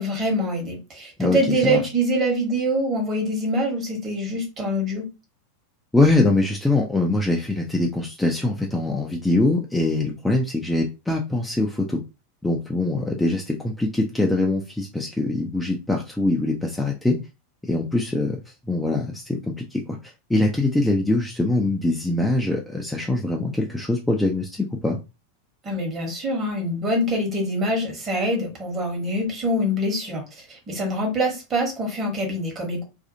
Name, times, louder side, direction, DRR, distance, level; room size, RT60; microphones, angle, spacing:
voice 1, 0.0-5.1 25.6-32.8, equal, 30° right, 1.3 m, -25 dB
voice 2, 1.2-1.8 5.9-12.0 12.4-17.2 17.6-18.4 18.7-25.0, left 2 dB, 5° left, 0.5 m, -23 dB
2.6 x 2.4 x 2.7 m
figure-of-eight pair, 85°, 0 cm